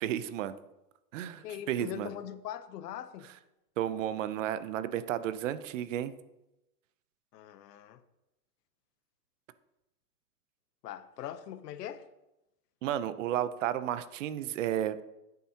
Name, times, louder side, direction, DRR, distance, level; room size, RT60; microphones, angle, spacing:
voice 1, 0.0-0.6 1.1-2.1 3.8-6.1 12.8-15.0, right 11 dB, 55° right, 0.6 m, -32 dB
voice 2, 1.4-3.3 7.3-8.0 10.8-12.1, left 10 dB, 80° left, 0.9 m, -41 dB
11.0 x 9.3 x 2.8 m
supercardioid pair, 160°, 48 cm